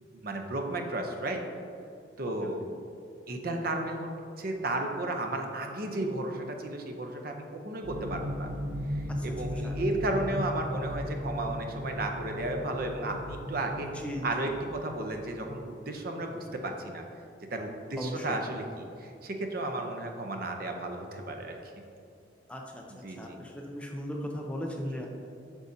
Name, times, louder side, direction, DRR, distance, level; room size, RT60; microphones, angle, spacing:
voice 1, 0.1-1.4 2.2-2.6 3.3-8.5 8.9-13.9 14.2-17.0 17.5-21.6 22.9-23.4 24.8-25.1, right 2 dB, 50° right, 4 dB, 0.7 m, -34 dB
voice 2, 2.4-2.7 9.1-9.3 9.6-9.7 13.8-14.2 18.0-18.2 22.5-22.8 23.2-25.1, equal, 5° left, 1 dB, 0.5 m, -37 dB
sound 1, 7.8-15.2, equal, 90° right, 0.6 m, -36 dB
8.2 x 6.3 x 2.7 m, 2.5 s
head